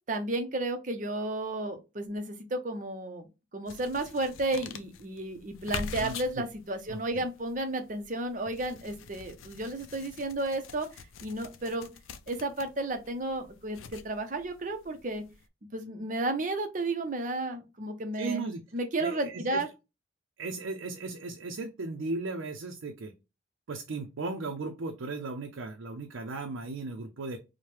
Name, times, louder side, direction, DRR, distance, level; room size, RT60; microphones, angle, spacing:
voice 1, 0.1-3.3 3.5-11.9 12.3-15.2 15.7-19.7, right 2 dB, 40° right, 7 dB, 0.6 m, -33 dB
sound 1, 3.7-15.4, left 6 dB, 85° left, 0.4 m, -45 dB
voice 2, 6.0-6.4 6.9-7.2 18.2-18.6 19.0-19.6 20.4-23.1 23.7-27.4, right 3 dB, 85° right, 3 dB, 0.5 m, -36 dB
4.7 x 2.1 x 3.0 m, 0.26 s
head